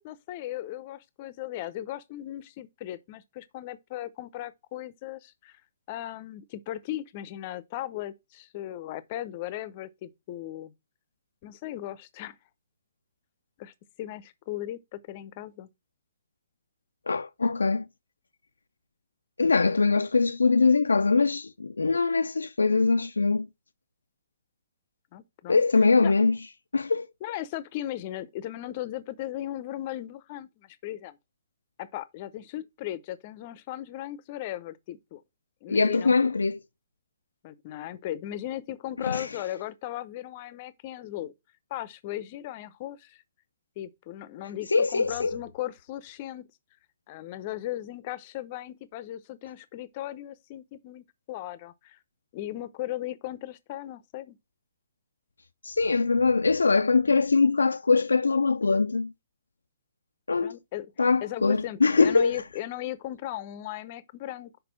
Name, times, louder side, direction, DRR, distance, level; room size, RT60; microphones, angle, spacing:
voice 1, 0.0-5.5 5.9-10.7 11.4-12.4 13.6-13.7 14.0-15.7 25.1-25.6 26.0-26.1 27.2-31.2 31.8-35.2 35.6-36.1 37.4-41.3 41.7-43.2 43.8-46.5 47.1-52.0 52.3-54.4 60.4-64.5, left 13 dB, 35° left, 0.7 m, -37 dB
voice 2, 17.1-17.9 19.4-23.5 25.5-26.4 26.7-27.1 35.7-36.6 39.1-39.3 44.7-45.4 55.6-59.1 60.3-60.6 61.0-62.4, left 4 dB, 75° left, 0.4 m, -22 dB
6.0 x 5.3 x 5.8 m
figure-of-eight pair, 125°, 0 cm